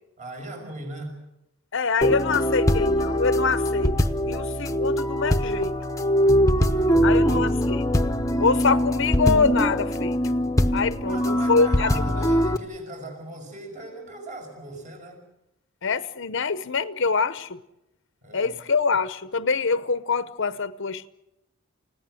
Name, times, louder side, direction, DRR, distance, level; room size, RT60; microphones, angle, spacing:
voice 1, 0.2-1.2 6.7-7.4 11.1-15.2 18.2-18.5, right 1 dB, 35° right, 5.6 m, -38 dB
voice 2, 1.7-5.7 7.0-7.8 8.4-10.2 10.7-11.9 15.8-17.6 18.3-21.1, left 4 dB, 60° left, 0.8 m, -25 dB
sound 1, 2.0-12.6, equal, 15° left, 1.0 m, -22 dB
30.0 x 17.5 x 7.7 m
head